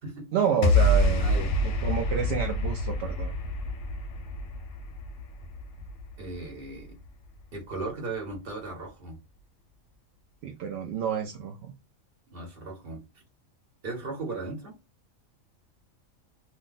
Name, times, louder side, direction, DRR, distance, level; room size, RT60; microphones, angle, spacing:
voice 1, 0.3-3.3 10.4-11.7, right 7 dB, 65° right, 0.7 m, -29 dB
sound 1, 0.6-7.1, left 1 dB, 75° left, 0.9 m, -27 dB
voice 2, 1.2-1.5 6.2-7.0 7.5-9.2 12.3-13.0 13.8-14.7, right 3 dB, 45° right, 1.2 m, -37 dB
2.6 x 2.1 x 3.9 m
omnidirectional pair, 1.4 m